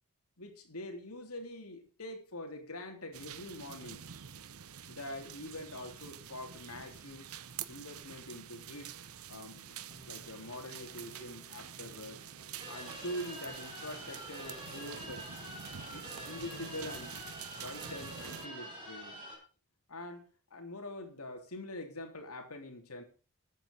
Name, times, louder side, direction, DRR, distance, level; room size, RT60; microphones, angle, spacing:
voice 1, 0.4-4.1 4.9-7.3 7.7-8.9 9.3-9.8 10.1-12.2 12.7-15.3 15.9-17.2 17.5-19.2 19.9-23.0, left 1 dB, 75° left, 4 dB, 3.3 m, -44 dB
sound 1, 3.1-18.5, right 8 dB, 70° right, 0.8 m, -47 dB
sound 2, 9.9-17.5, left 1 dB, 25° left, 2.3 m, -61 dB
sound 3, 12.6-19.3, right 1 dB, 20° right, 6.8 m, -46 dB
13.5 x 9.1 x 5.4 m, 0.36 s
head